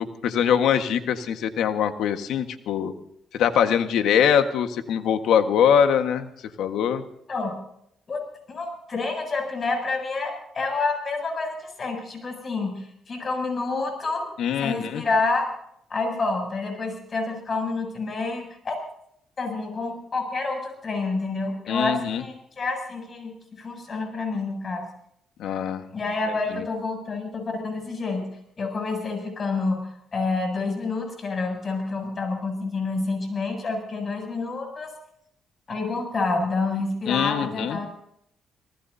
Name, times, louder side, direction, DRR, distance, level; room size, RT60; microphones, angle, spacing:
voice 1, 0.0-2.9 3.4-6.3 6.6-7.0 14.4-15.0 21.7-22.2 25.4-25.8 26.5-26.6 37.1-37.8, left 8 dB, 80° left, 7 dB, 1.6 m, -22 dB
voice 2, 8.5-14.3 14.6-15.5 15.9-18.7 19.4-24.8 25.9-28.3 28.6-34.9 35.7-37.9, left 3 dB, 40° left, 3 dB, 7.8 m, -28 dB
26.0 x 19.0 x 2.8 m, 0.72 s
cardioid pair, 90°, 0 cm